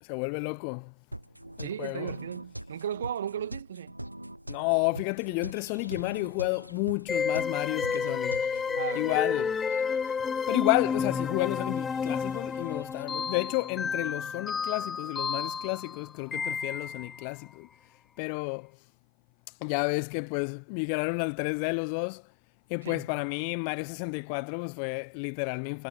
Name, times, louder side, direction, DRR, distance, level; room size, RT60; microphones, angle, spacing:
voice 1, 0.0-0.9 1.6-2.1 4.5-8.6 9.0-9.5 10.5-17.7 18.2-18.7 19.6-22.2 22.7-25.9, left 40 dB or more, 45° left, 1.0 m, -31 dB
sound 1, 1.1-8.8, right 1 dB, 90° right, 0.9 m, -42 dB
voice 2, 1.6-4.0 8.7-9.2 22.8-23.1, right 9 dB, 65° right, 2.4 m, -36 dB
sound 2, 5.1-13.7, left 2 dB, 85° left, 4.4 m, -55 dB
sound 3, 7.1-17.2, left 6 dB, 15° left, 0.4 m, -31 dB
figure-of-eight pair, 95°, 0 cm